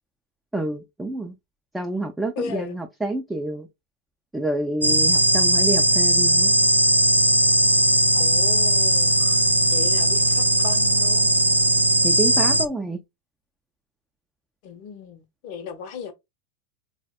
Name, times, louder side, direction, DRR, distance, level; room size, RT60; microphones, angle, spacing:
voice 1, 0.5-1.3 1.7-3.7 4.3-6.5 12.0-13.0, right 2 dB, 5° right, 0.4 m, -28 dB
voice 2, 2.4-2.7 8.1-9.4 9.7-11.4 14.6-16.1, left 7 dB, 45° left, 0.7 m, -36 dB
sound 1, 4.8-12.7, right 1 dB, 85° right, 0.4 m, -18 dB
4.0 x 2.1 x 2.2 m
figure-of-eight pair, 90°, 0 cm